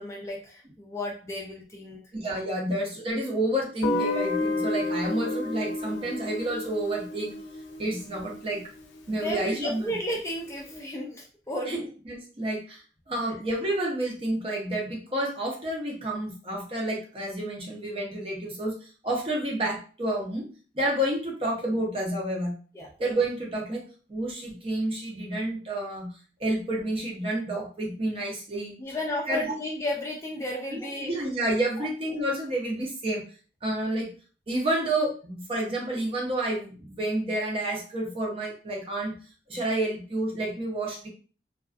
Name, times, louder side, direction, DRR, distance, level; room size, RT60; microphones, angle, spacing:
voice 1, 0.0-2.0 9.2-11.9 22.7-22.9 28.8-31.1 31.8-31.9, left 1 dB, 15° left, -1 dB, 0.4 m, -33 dB
voice 2, 2.1-7.3 7.8-8.6 9.1-9.8 11.7-11.8 12.1-12.8 13.1-20.5 20.7-22.5 23.0-23.8 24.1-26.1 26.4-28.7 29.3-29.4 30.7-33.2 33.6-34.1 34.5-39.2 39.5-41.1, right 1 dB, 30° right, -2 dB, 0.6 m, -29 dB
Guitar, 3.8-8.7, left 2 dB, 90° left, 0.4 m, -31 dB
2.3 x 2.2 x 2.4 m, 0.38 s
head